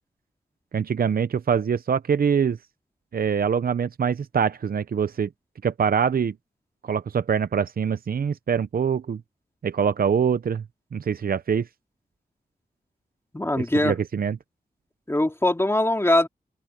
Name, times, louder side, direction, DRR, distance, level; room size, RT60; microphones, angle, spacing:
voice 1, 0.7-2.6 3.1-5.3 5.6-6.3 6.8-9.2 9.6-10.6 10.9-11.7 13.6-14.4, right 7 dB, 65° right, 0.7 m, -24 dB
voice 2, 13.3-13.9 15.1-16.3, left 1 dB, 15° left, 2.6 m, -21 dB
open air
cardioid pair, 65°, 17 cm